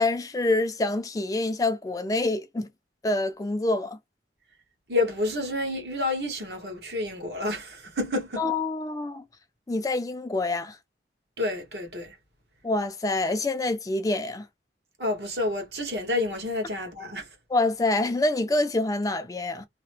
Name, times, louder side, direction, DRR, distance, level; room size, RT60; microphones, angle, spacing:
voice 1, 0.0-2.7 3.0-4.0 8.4-9.2 9.7-10.8 12.6-14.5 17.5-19.7, left 2 dB, 20° left, 0.3 m, -26 dB
voice 2, 4.9-8.4 11.4-12.1 15.0-17.3, left 2 dB, 70° right, 1.1 m, -29 dB
2.8 x 2.0 x 3.2 m
head